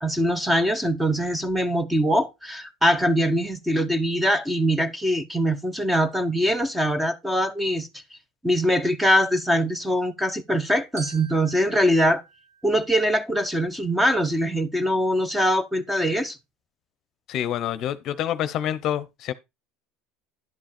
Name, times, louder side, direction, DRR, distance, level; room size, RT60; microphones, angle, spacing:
voice 1, 0.0-7.9 8.4-12.2 12.6-16.4, equal, 5° right, 1.1 m, -22 dB
Glockenspiel, 11.0-13.4, right 3 dB, 85° right, 4.5 m, -45 dB
voice 2, 17.3-19.3, left 11 dB, 50° left, 0.8 m, -27 dB
11.0 x 5.4 x 4.3 m
supercardioid pair, 120°, 0 cm